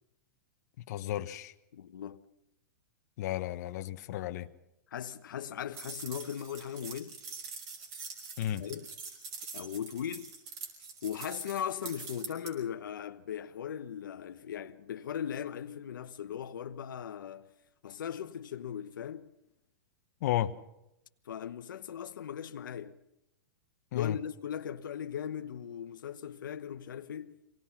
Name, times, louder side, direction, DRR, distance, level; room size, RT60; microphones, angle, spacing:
voice 1, 0.9-1.5 3.2-4.5 8.4-8.6 20.2-20.5 23.9-24.2, left 12 dB, 55° left, 1.3 m, -33 dB
voice 2, 1.7-2.2 4.9-7.2 8.6-8.9 9.5-10.3 11.0-17.5 17.8-19.3 21.2-23.0 23.9-27.4, left 9 dB, 85° left, 1.1 m, -38 dB
sound 1, 5.7-12.5, right 5 dB, 40° right, 5.8 m, -44 dB
25.0 x 19.0 x 5.9 m
hypercardioid pair, 140°, 11 cm